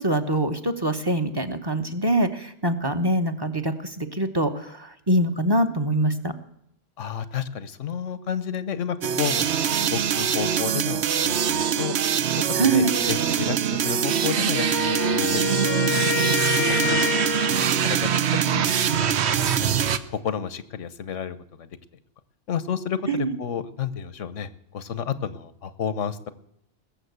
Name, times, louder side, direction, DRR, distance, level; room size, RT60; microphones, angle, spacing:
voice 1, 0.0-6.3 12.5-12.9 23.1-23.4, right 1 dB, 20° right, 6 dB, 0.9 m, -24 dB
voice 2, 7.0-11.9 12.5-15.6 15.9-19.7 20.1-21.7 22.5-26.3, left 8 dB, 85° left, 14 dB, 1.3 m, -32 dB
sound 1, 9.0-20.0, right 8 dB, 65° right, 1.0 m, -23 dB
Wind instrument woodwind instrument, 14.5-17.9, left 7 dB, 55° left, 0.9 m, -27 dB
20.5 x 7.2 x 8.1 m, 0.75 s
omnidirectional pair, 1.2 m